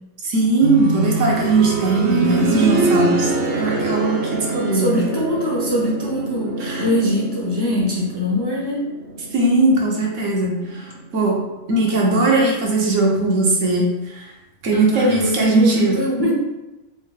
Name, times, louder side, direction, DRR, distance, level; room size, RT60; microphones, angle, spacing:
voice 1, 0.2-5.0 6.6-6.9 9.3-10.8 11.1-11.4 11.7-13.9 14.1-14.3 14.6-15.9, right 2 dB, 75° right, -2 dB, 1.1 m, -19 dB
sound 1, 0.6-11.4 12.8-12.9, right 3 dB, 55° right, 0.9 m, -25 dB
voice 2, 4.7-8.8 14.7-16.3, left 1 dB, 30° left, -5 dB, 0.5 m, -22 dB
4.3 x 2.1 x 3.2 m, 1.0 s
omnidirectional pair, 1.3 m